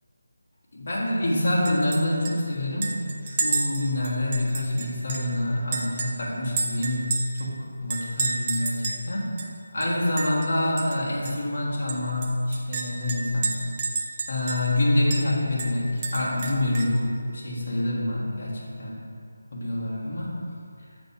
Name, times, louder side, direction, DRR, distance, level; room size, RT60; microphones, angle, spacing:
voice 1, 0.7-3.0 3.2-9.4 9.7-13.6 14.3-19.0 19.5-20.4, left 1 dB, 55° left, -6 dB, 1.6 m, -26 dB
Chink clink, 1.6-2.0 2.2-2.3 2.8-5.3 5.7-7.5 7.9-9.0 9.4-9.5 9.8-10.5 10.8-11.0 11.2-11.3 11.9-14.8 15.1-15.2 15.6-17.0, right 3 dB, 25° right, 0.6 m, -30 dB
8.1 x 3.4 x 5.6 m, 2.4 s
figure-of-eight pair, 160°, 0 cm